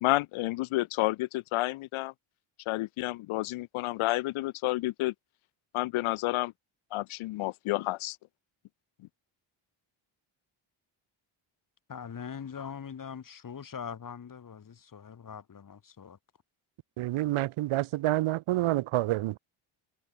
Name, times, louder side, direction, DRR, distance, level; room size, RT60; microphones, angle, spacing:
voice 1, 0.0-2.1 2.7-5.1 5.7-6.5 6.9-8.2, left 19 dB, 85° left, 0.6 m, -30 dB
voice 2, 11.9-16.2, left 7 dB, 40° left, 7.9 m, -42 dB
voice 3, 17.0-19.4, right 16 dB, 85° right, 0.8 m, -28 dB
wide cardioid pair, 165°, 48 cm